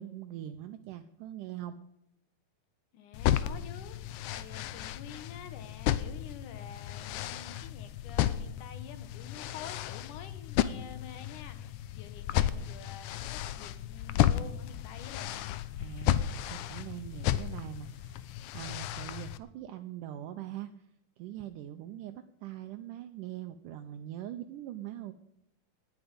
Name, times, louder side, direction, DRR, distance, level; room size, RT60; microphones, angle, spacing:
voice 1, 0.0-1.8 15.8-20.7 21.2-25.1, right 12 dB, 80° right, 7 dB, 2.0 m, -42 dB
voice 2, 2.9-15.5, left 8 dB, 65° left, 9 dB, 2.4 m, -48 dB
sound 1, 3.1-19.4, left 12 dB, 90° left, 1.7 m, -33 dB
19.0 x 10.0 x 5.2 m, 0.81 s
omnidirectional pair, 4.3 m